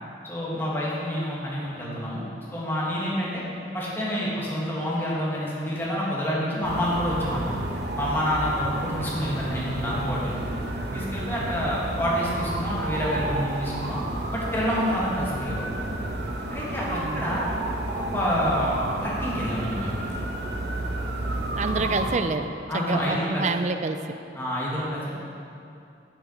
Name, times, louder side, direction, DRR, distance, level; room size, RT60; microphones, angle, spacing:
voice 1, 0.2-3.4 3.7-7.6 7.9-10.4 10.9-14.0 14.3-15.8 16.5-17.5 17.9-20.0 21.7-21.8 22.7-23.5 24.3-25.2, equal, 15° left, -7 dB, 2.1 m, -28 dB
sound 1, 6.6-22.2, right 1 dB, 70° right, 1.0 m, -31 dB
voice 2, 16.9-17.3 21.6-24.0, right 3 dB, 40° right, 9 dB, 0.4 m, -28 dB
12.0 x 7.1 x 4.5 m, 2.6 s
head